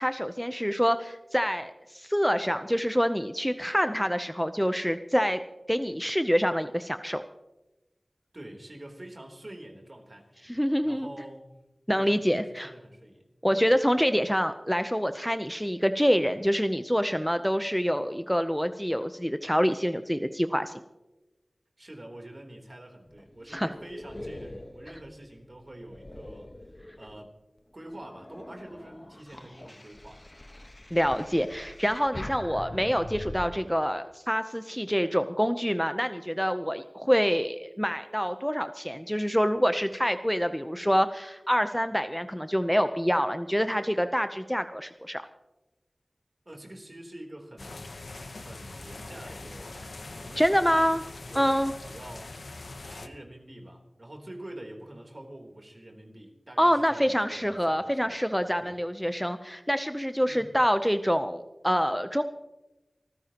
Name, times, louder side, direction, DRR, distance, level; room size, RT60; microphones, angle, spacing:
voice 1, 0.0-5.4 5.7-7.2 10.4-11.1 11.9-12.7 13.4-20.7 23.5-23.7 30.9-45.2 50.4-51.0 51.3-51.7 56.6-62.2, equal, ahead, 9 dB, 0.7 m, -26 dB
voice 2, 8.3-10.5 10.8-11.5 11.9-13.6 21.8-27.4 27.7-30.2 46.4-48.0 48.3-51.5 51.8-52.4 52.8-58.2 58.6-58.8 60.3-60.5, right 1 dB, 50° right, 1 dB, 3.5 m, -46 dB
sound 1, 23.0-27.3 27.8-33.4, left 1 dB, 35° left, 1.2 m, -44 dB
sound 2, 47.6-53.1, left 2 dB, 85° left, 1.0 m, -42 dB
27.0 x 14.5 x 3.0 m, 1.0 s
wide cardioid pair, 40°, 0 cm